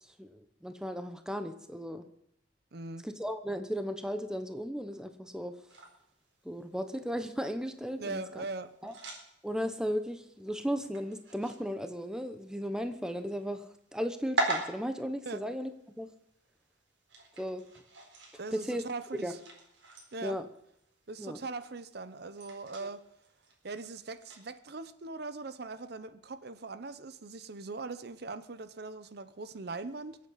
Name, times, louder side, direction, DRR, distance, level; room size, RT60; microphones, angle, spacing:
voice 1, 0.2-2.0 3.0-5.5 6.4-8.4 8.8-8.9 9.4-13.6 13.9-15.7 16.0-16.1 17.4-17.6 18.5-18.8 19.2-19.4 20.2-20.5 21.2-21.4 22.8-22.9, equal, 5° right, 1.1 m, -35 dB
voice 2, 2.7-3.0 8.0-8.7 15.3-15.4 18.4-19.4 20.1-20.4 21.1-23.0 23.6-30.2, right 3 dB, 60° right, 0.8 m, -40 dB
sound 1, 5.7-24.5, right 2 dB, 85° right, 4.3 m, -43 dB
23.0 x 8.5 x 5.7 m
head